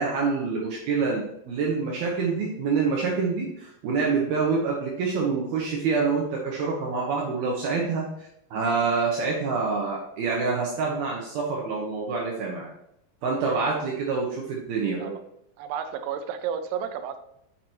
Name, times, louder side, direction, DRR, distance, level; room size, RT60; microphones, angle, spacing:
voice 1, 0.0-8.0 8.5-12.7 13.2-15.1, right 4 dB, 65° right, -2 dB, 2.8 m, -26 dB
voice 2, 15.6-17.2, right 8 dB, 85° right, 8 dB, 3.1 m, -31 dB
8.3 x 6.0 x 4.6 m, 0.77 s
omnidirectional pair, 5.2 m